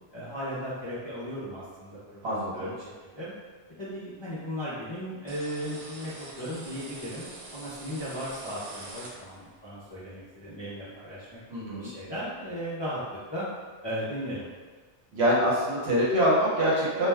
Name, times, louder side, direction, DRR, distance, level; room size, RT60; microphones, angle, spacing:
voice 1, 0.1-3.3 3.8-7.3 7.5-11.4 11.7-13.0 13.3-13.5 13.8-14.5, equal, 35° left, -11 dB, 0.4 m, -36 dB
voice 2, 2.2-2.7 11.5-11.9 15.1-17.1, equal, 65° right, -7 dB, 1.1 m, -25 dB
sound 1, 5.3-9.6, right 2 dB, 80° right, 0.3 m, -44 dB
2.5 x 2.2 x 3.2 m, 1.4 s
omnidirectional pair, 1.2 m